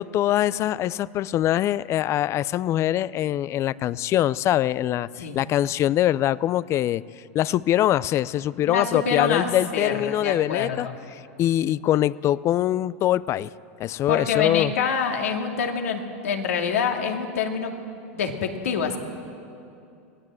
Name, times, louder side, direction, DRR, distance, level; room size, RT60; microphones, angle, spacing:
voice 1, 0.0-7.0 7.3-13.5 13.8-14.7, left 12 dB, 40° left, 20 dB, 0.5 m, -23 dB
voice 2, 8.6-11.0 14.1-17.7 18.1-19.0, left 6 dB, 85° left, 3 dB, 2.5 m, -26 dB
25.0 x 18.0 x 7.8 m, 2.6 s
hypercardioid pair, 110°, 8 cm